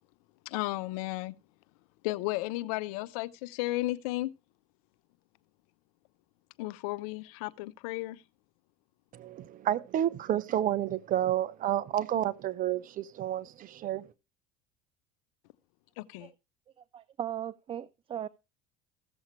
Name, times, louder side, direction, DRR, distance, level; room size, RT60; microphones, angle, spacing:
voice 1, 0.5-1.3 2.0-4.3 6.6-8.2 16.0-16.3, left 19 dB, 75° left, 0.6 m, -34 dB
voice 2, 9.1-14.1, right 12 dB, 45° right, 0.8 m, -30 dB
voice 3, 16.9-18.3, right 10 dB, 30° right, 0.4 m, -37 dB
15.5 x 7.2 x 3.1 m
hypercardioid pair, 80°, 18 cm